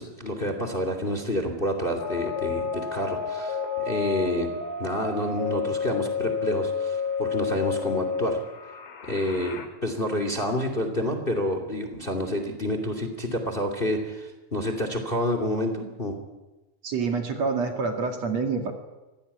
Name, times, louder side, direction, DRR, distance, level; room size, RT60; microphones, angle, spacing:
voice 1, 0.0-4.5 4.8-8.4 9.0-16.2, equal, 20° left, 6 dB, 2.6 m, -28 dB
sound 1, 2.0-9.7, left 6 dB, 55° left, 2.9 m, -30 dB
voice 2, 16.8-18.7, right 4 dB, 55° right, 4 dB, 3.3 m, -27 dB
24.0 x 17.5 x 9.8 m, 1.1 s
omnidirectional pair, 3.7 m